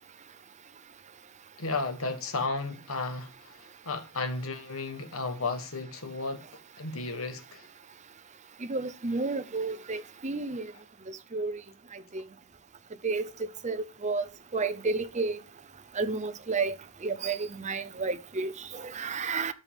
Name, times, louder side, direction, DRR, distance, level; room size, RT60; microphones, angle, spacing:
voice 1, 1.6-6.5 6.8-7.7, left 3 dB, 65° left, 1.5 m, -34 dB
voice 2, 8.6-10.7 11.1-11.6 11.9-12.2 13.0-13.3 13.6-14.2 14.5-15.4 16.0-16.8 17.0-19.5, right 4 dB, 30° right, 0.7 m, -31 dB
13.0 x 5.6 x 3.6 m
head